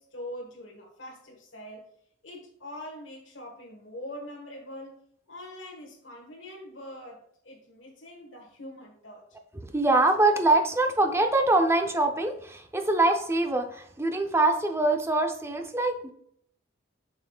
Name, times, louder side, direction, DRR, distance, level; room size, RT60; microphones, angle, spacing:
voice 1, 0.0-1.8 2.2-5.0 5.3-9.2, left 1 dB, 70° left, -1 dB, 1.4 m, -43 dB
voice 2, 9.7-16.1, right 2 dB, 15° right, 5 dB, 0.6 m, -24 dB
7.4 x 5.7 x 2.3 m, 0.67 s
head